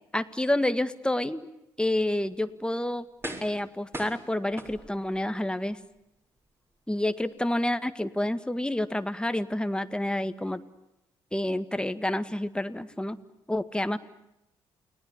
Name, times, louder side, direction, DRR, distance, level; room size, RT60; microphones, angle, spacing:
voice 1, 0.1-1.5 1.8-3.1 3.4-5.8 6.9-10.6 11.3-13.2 13.5-14.0, left 1 dB, 5° left, 11 dB, 1.9 m, -28 dB
sound 1, 2.3-2.4 3.2-3.7 3.9-5.2 5.7-5.8, right 1 dB, 20° right, 6.7 m, -39 dB
29.5 x 19.5 x 9.8 m, 0.88 s
hypercardioid pair, 45°, 12 cm